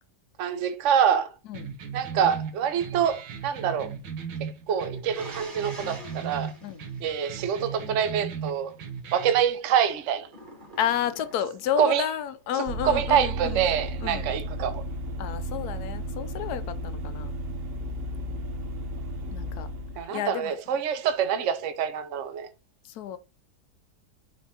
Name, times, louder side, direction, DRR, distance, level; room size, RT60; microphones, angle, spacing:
voice 1, 0.4-1.3 1.9-3.9 4.7-6.5 7.0-8.8 9.1-10.3 11.8-12.1 12.5-14.8 20.0-22.5, right 8 dB, 55° right, 1.0 m, -26 dB
sound 1, 1.5-9.5, right 6 dB, 90° right, 1.7 m, -37 dB
sound 2, 5.1-7.9 10.3-11.7, right 1 dB, 30° right, 1.9 m, -45 dB
voice 2, 10.8-13.6 14.0-14.3 15.2-17.4 19.3-19.7 20.1-20.5 23.0-23.2, left 10 dB, 70° left, 1.1 m, -31 dB
Vehicle, 12.7-20.0, right 1 dB, 70° right, 0.5 m, -33 dB
10.0 x 3.5 x 2.8 m
omnidirectional pair, 1.8 m